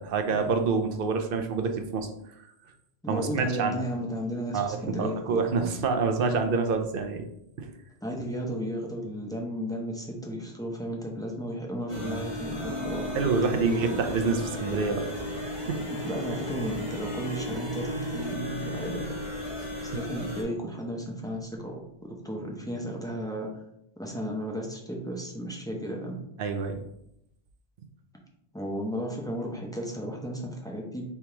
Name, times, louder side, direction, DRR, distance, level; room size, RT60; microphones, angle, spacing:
voice 1, 0.0-2.1 3.1-3.8 4.5-7.3 7.6-7.7 12.0-12.2 13.1-15.0 15.7-15.8 26.4-26.8, right 4 dB, 65° right, 6 dB, 0.7 m, -27 dB
voice 2, 3.0-5.4 8.0-13.8 15.9-19.3 19.8-23.5 24.0-26.2 28.5-31.0, equal, 5° left, -1 dB, 0.5 m, -34 dB
sound 1, 11.9-20.4, left 1 dB, 45° left, 1.4 m, -36 dB
sound 2, 12.6-21.1 21.3-21.4, equal, 70° left, 1.3 m, -40 dB
3.5 x 2.9 x 4.5 m, 0.78 s
omnidirectional pair, 1.1 m